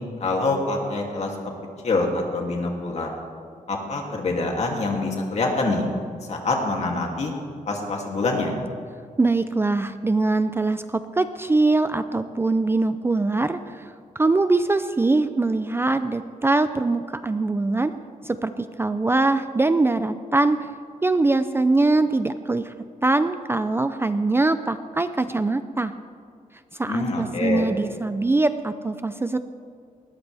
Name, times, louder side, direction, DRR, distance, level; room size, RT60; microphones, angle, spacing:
voice 1, 0.2-1.3 1.8-3.1 3.7-5.8 6.3-7.3 7.7-8.5 26.9-27.7, left 3 dB, 50° left, 0 dB, 2.7 m, -25 dB
voice 2, 9.2-17.9 18.2-20.6 21.0-22.7 23.0-25.9 26.7-29.4, right 2 dB, 15° right, 11 dB, 0.4 m, -22 dB
20.5 x 17.5 x 3.4 m, 2.3 s
wide cardioid pair, 150°, 14 cm